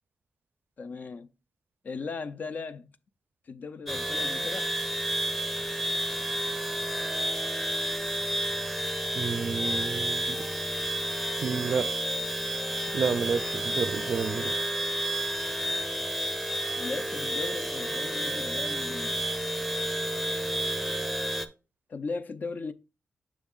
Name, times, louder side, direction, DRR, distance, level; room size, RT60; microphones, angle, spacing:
voice 1, 0.8-1.3 1.8-2.9 3.5-4.7 16.8-19.2 21.9-22.7, left 4 dB, 50° left, 0.5 m, -37 dB
sound 1, 3.9-21.5, right 1 dB, 5° left, 0.7 m, -30 dB
voice 2, 9.1-10.4 11.4-11.9 12.9-14.5, right 6 dB, 60° right, 0.5 m, -30 dB
7.3 x 6.1 x 2.4 m
cardioid pair, 85°, 4 cm